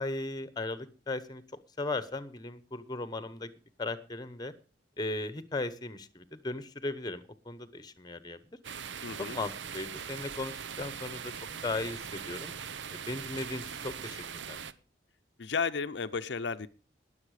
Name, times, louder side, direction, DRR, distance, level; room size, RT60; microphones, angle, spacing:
voice 1, 0.0-1.4 1.8-3.5 3.8-4.5 5.0-8.4 9.2-11.3 11.6-12.5 12.9-14.6, left 2 dB, 20° left, 14 dB, 1.0 m, -37 dB
sound 1, 8.6-14.7, right 7 dB, 80° right, 0.8 m, -41 dB
voice 2, 9.0-9.4 15.4-16.7, left 5 dB, 75° left, 9 dB, 0.7 m, -33 dB
20.5 x 7.3 x 4.9 m, 0.34 s
head